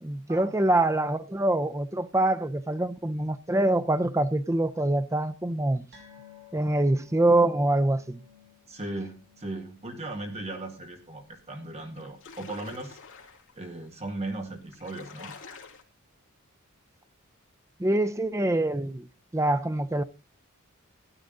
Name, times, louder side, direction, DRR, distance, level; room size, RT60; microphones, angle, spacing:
voice 1, 0.0-5.8 6.5-8.2 17.8-19.1 19.3-20.0, right 1 dB, 15° right, 0.6 m, -25 dB
sound 1, 5.9-12.7 13.0-13.2 13.6-13.7, left 7 dB, 55° right, 4.0 m, -56 dB
voice 2, 8.7-13.0 13.5-15.3, right 2 dB, 30° right, 1.9 m, -37 dB
sound 2, 11.3-11.4 11.8-13.6 14.3-14.4 14.6-15.8, left 5 dB, 60° left, 2.6 m, -47 dB
13.0 x 11.5 x 3.9 m
head